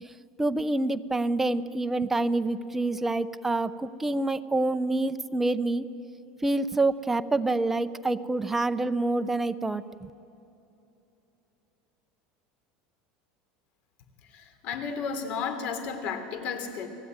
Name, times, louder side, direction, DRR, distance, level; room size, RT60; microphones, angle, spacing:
voice 1, 0.4-5.8 6.4-10.1, right 2 dB, 10° right, 11 dB, 0.7 m, -27 dB
voice 2, 14.3-16.9, left 6 dB, 50° left, 9 dB, 3.3 m, -33 dB
30.0 x 20.0 x 9.6 m, 2.9 s
supercardioid pair, 150°, 3 cm